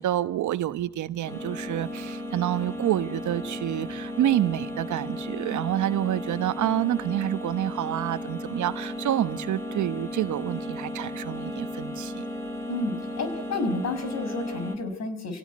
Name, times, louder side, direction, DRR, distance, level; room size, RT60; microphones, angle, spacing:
voice 1, 0.0-12.2, right 12 dB, 75° right, 1.3 m, -28 dB
sound 1, 1.2-14.8, left 1 dB, 10° left, 3.6 m, -35 dB
voice 2, 12.7-15.4, left 2 dB, 60° left, 6.0 m, -31 dB
27.5 x 17.5 x 9.6 m
cardioid pair, 90°, 30 cm